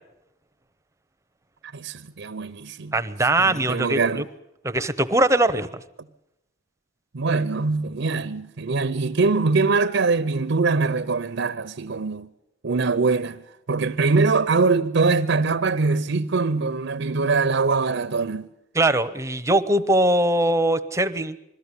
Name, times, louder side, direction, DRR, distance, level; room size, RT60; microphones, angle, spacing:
voice 1, 1.7-2.9 3.4-4.2 7.1-12.3 12.6-13.4 13.7-18.5, right 4 dB, 65° right, 0.7 m, -23 dB
voice 2, 2.9-4.2 4.6-5.8 18.7-21.4, right 1 dB, 15° right, 0.8 m, -21 dB
21.5 x 14.0 x 9.8 m
head